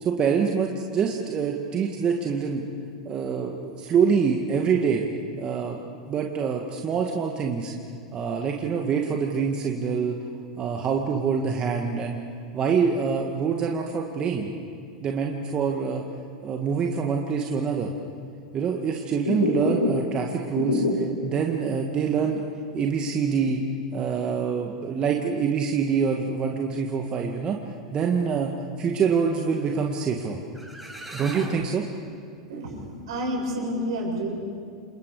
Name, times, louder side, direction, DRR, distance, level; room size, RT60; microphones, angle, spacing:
voice 1, 0.0-2.6 3.1-5.0 5.4-5.8 6.1-7.7 8.1-10.2 10.6-12.2 12.5-14.5 15.0-16.0 16.4-17.9 18.5-22.5 22.7-23.6 23.9-27.6 27.9-30.4 31.1-31.8, right 6 dB, 30° right, 1 dB, 1.9 m, -25 dB
sound 1, 19.3-20.2 20.4-21.3 21.7-21.8 22.2-22.3 22.8-24.2 24.5-25.2, left 2 dB, 80° left, 3.3 m, -27 dB
sound 2, 30.6-31.7, right 1 dB, 5° right, 4.9 m, -38 dB
voice 2, 32.5-34.3, equal, 65° right, -2 dB, 7.5 m, -29 dB
29.0 x 27.0 x 4.9 m, 2.3 s
figure-of-eight pair, 90°, 3 cm